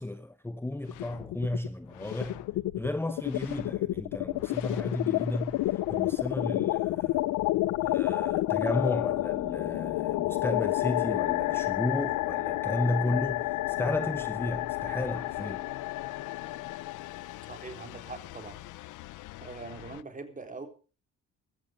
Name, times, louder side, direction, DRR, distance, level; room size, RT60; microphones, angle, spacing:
voice 1, 0.0-2.4 2.8-7.2 7.8-15.6, left 1 dB, 10° left, 0.7 m, -33 dB
sound 1, 0.9-1.7 2.0-20.0, left 17 dB, 85° left, 0.6 m, -31 dB
voice 2, 17.5-18.6 19.4-20.7, right 3 dB, 25° right, 3.8 m, -42 dB
14.0 x 14.0 x 5.2 m
cardioid pair, 90°, 30 cm